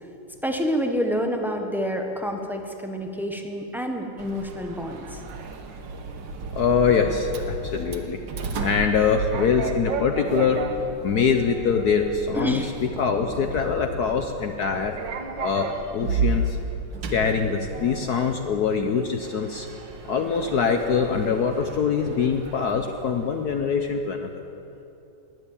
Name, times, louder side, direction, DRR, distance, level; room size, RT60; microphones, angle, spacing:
voice 1, 0.4-5.2 12.3-12.7, equal, ahead, 3 dB, 0.7 m, -28 dB
Sliding door, 4.2-23.8, right 3 dB, 70° right, 1.7 m, -33 dB
voice 2, 6.5-8.2 8.6-10.6 11.0-15.0 15.4-16.6 17.1-19.7 20.0-24.4, left 6 dB, 60° left, 5 dB, 1.2 m, -24 dB
21.0 x 7.7 x 8.7 m, 2.9 s
omnidirectional pair, 2.2 m